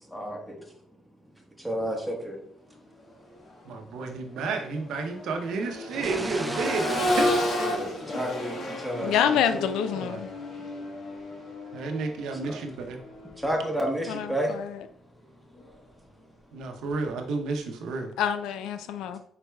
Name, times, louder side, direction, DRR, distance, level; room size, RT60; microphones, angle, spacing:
voice 1, 0.1-0.7 1.6-2.4 7.6-9.1 9.5-9.6 12.4-12.6 13.4-14.5, right 1 dB, ahead, 0 dB, 1.2 m, -31 dB
Accelerating revving vroom, 3.4-3.5 4.0-13.9 15.6-15.7, left 1 dB, 60° left, 1.2 m, -32 dB
voice 2, 3.6-7.3 10.0-10.2 11.7-13.0 16.5-18.1, right 4 dB, 80° right, 4 dB, 0.7 m, -31 dB
sound 1, 5.9-8.7, right 2 dB, 15° right, 0.4 m, -36 dB
voice 3, 9.0-10.3 14.1-14.8 18.2-19.2, left 8 dB, 90° left, 11 dB, 0.3 m, -27 dB
4.4 x 4.0 x 2.3 m, 0.65 s
cardioid pair, 90°, 0 cm